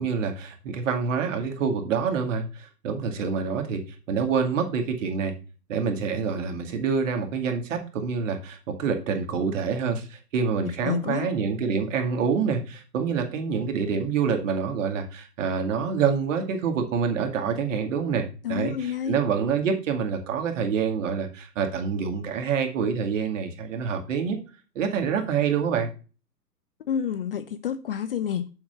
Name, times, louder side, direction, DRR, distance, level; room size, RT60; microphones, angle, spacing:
voice 1, 0.0-3.8 4.1-5.3 5.7-24.4 24.8-25.9, right 6 dB, 50° right, 5 dB, 2.1 m, -26 dB
voice 2, 10.6-11.3 18.4-19.2 26.9-28.5, left 8 dB, 35° left, 12 dB, 0.5 m, -29 dB
7.2 x 4.5 x 6.6 m, 0.35 s
hypercardioid pair, 135°, 49 cm